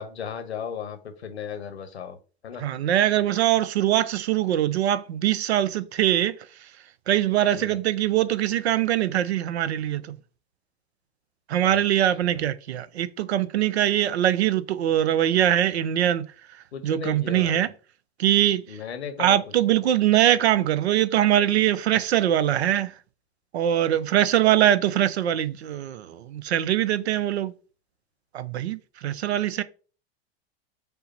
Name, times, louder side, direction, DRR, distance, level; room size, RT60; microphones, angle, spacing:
voice 1, 0.0-2.2 2.4-2.6 7.5-7.8 11.6-11.8 12.2-12.4 16.7-17.7 18.7-19.4, left 7 dB, 85° left, 0.9 m, -35 dB
voice 2, 2.6-6.3 7.1-10.2 11.5-16.3 16.8-17.7 18.2-18.8 19.2-22.9 23.5-27.5 28.3-29.6, right 12 dB, 85° right, 0.5 m, -22 dB
5.5 x 2.0 x 4.0 m
hypercardioid pair, 90°, 32 cm